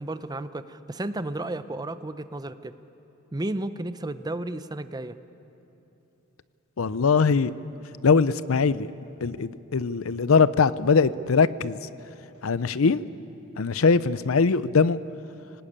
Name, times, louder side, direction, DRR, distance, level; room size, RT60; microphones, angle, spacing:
voice 1, 0.0-2.7 3.3-5.1, right 1 dB, 20° right, 12 dB, 0.7 m, -33 dB
voice 2, 6.8-7.5 8.0-8.9 9.2-11.8 12.4-13.0 13.6-15.0, left 5 dB, 85° left, 16 dB, 0.6 m, -21 dB
26.0 x 18.5 x 8.8 m, 2.9 s
head